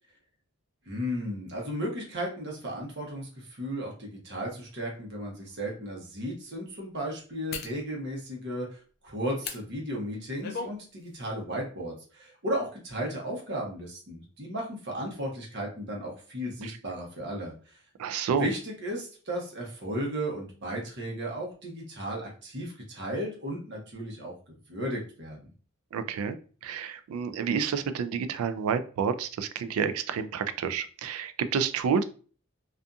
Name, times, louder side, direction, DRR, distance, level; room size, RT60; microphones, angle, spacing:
voice 1, 0.9-17.8 18.3-25.4, equal, 55° right, -1 dB, 0.9 m, -35 dB
sound 1, 4.7-4.8 5.4-5.5 7.5-7.8 9.4-9.6 10.1-10.8 11.1-11.3, left 5 dB, 50° left, 0.3 m, -37 dB
voice 2, 18.0-18.5 25.9-26.4 26.6-32.0, right 6 dB, 90° right, 11 dB, 0.3 m, -29 dB
2.6 x 2.4 x 2.3 m, 0.39 s
head